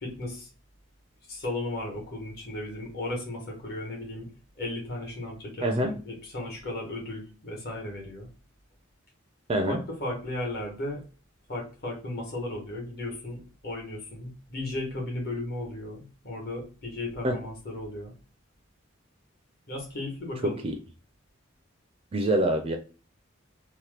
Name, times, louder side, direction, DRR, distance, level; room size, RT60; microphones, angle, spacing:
voice 1, 0.0-0.5 1.3-4.3 4.6-8.3 9.7-11.0 11.5-18.1 19.7-20.6, left 1 dB, 50° left, -1 dB, 1.1 m, -35 dB
voice 2, 5.6-5.9 9.5-9.8 17.2-17.4 20.4-20.8 22.1-22.8, right 1 dB, 25° right, 6 dB, 0.4 m, -25 dB
2.9 x 2.1 x 3.2 m, 0.34 s
head